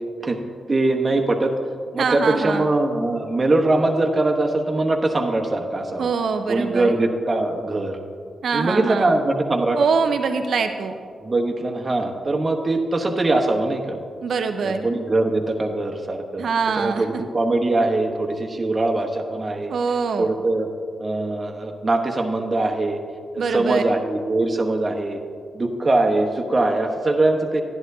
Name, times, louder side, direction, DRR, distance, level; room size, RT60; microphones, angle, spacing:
voice 1, 0.7-1.5 1.9-6.1 6.5-8.0 8.5-9.8 11.2-14.0 14.6-16.5 16.7-19.7 20.2-20.7 21.0-23.0 23.3-25.2 25.5-27.6, right 2 dB, 40° right, 2 dB, 1.0 m, -22 dB
voice 2, 2.0-2.6 6.0-6.9 8.4-9.1 9.8-11.0 14.2-14.9 16.4-17.1 19.7-20.3 23.4-23.8, right 5 dB, 70° right, 7 dB, 0.5 m, -23 dB
11.0 x 10.5 x 2.7 m, 2.2 s
supercardioid pair, 40°, 0 cm